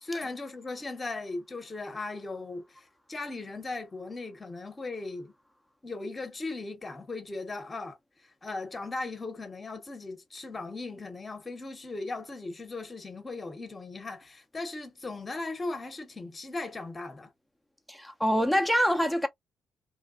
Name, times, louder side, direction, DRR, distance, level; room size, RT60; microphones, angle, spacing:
voice 1, 0.0-5.3 5.8-8.0 8.4-17.3, left 3 dB, 25° left, 1.0 m, -38 dB
voice 2, 17.9-19.3, equal, ahead, 0.7 m, -25 dB
3.2 x 2.3 x 2.3 m
cardioid pair, 90°, 0 cm